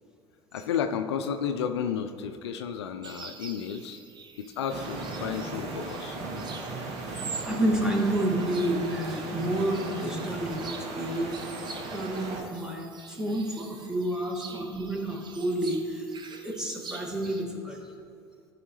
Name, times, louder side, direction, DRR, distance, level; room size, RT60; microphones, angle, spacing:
voice 1, 0.5-4.0 4.4-6.2, left 7 dB, 80° left, 7 dB, 0.4 m, -32 dB
sound 1, 3.0-17.5, right 4 dB, 35° right, 1.0 m, -46 dB
sound 2, 4.7-12.4, right 3 dB, 55° right, 1.7 m, -37 dB
voice 2, 6.8-11.4 11.9-16.1 16.4-17.9, right 1 dB, 5° right, -1 dB, 1.9 m, -30 dB
14.0 x 4.9 x 3.2 m, 2.3 s
hypercardioid pair, 65°, 14 cm